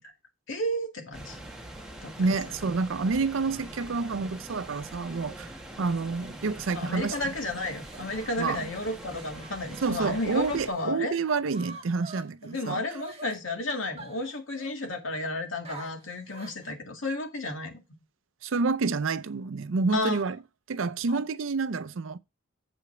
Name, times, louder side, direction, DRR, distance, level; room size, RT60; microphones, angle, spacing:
voice 1, 0.5-1.4 2.0-2.8 6.7-11.2 12.5-17.8 19.9-20.2 21.1-21.2, left 1 dB, 85° left, 2.3 m, -32 dB
sound 1, 1.1-10.7, right 1 dB, 5° right, 1.5 m, -44 dB
voice 2, 2.2-7.1 8.4-8.6 9.8-12.8 18.4-20.4 20.7-22.2, right 4 dB, 80° right, 0.5 m, -28 dB
sound 2, 7.6-10.9 11.2-13.4 14.0-15.0 15.6-16.7, right 3 dB, 30° right, 1.5 m, -47 dB
7.9 x 5.1 x 5.9 m
head